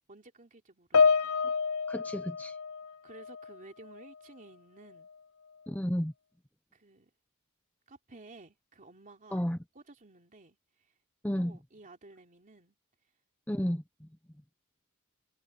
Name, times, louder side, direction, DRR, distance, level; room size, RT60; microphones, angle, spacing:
voice 1, 0.1-1.4 3.0-5.1 6.7-7.1 7.9-9.4 9.7-10.9 11.3-12.8, right 2 dB, 35° right, 3.1 m, -54 dB
Piano, 0.9-3.6 3.8-4.2 5.0-5.1, left 5 dB, 75° left, 0.8 m, -28 dB
voice 2, 1.9-2.6 5.7-6.1 9.3-9.6 11.2-11.6 13.5-14.1, equal, 5° left, 0.8 m, -32 dB
head